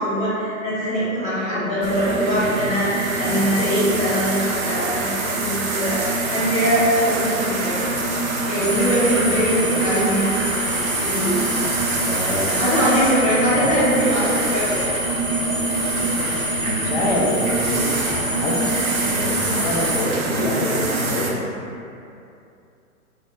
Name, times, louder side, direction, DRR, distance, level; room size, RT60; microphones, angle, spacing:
voice 1, 0.0-7.8 8.2-10.3 10.7-11.4 11.7-11.9 12.4-14.9, equal, 15° left, -14 dB, 1.0 m, -22 dB
sound 1, 1.8-21.3, right 2 dB, 70° right, 0.5 m, -25 dB
sound 2, 8.6-20.0, right 1 dB, 20° right, 0.4 m, -27 dB
voice 2, 12.0-12.6 13.6-13.7 16.6-18.0 18.4-21.4, left 1 dB, 45° left, -3 dB, 0.5 m, -25 dB
2.4 x 2.1 x 2.4 m, 2.6 s
figure-of-eight pair, 120°, 43 cm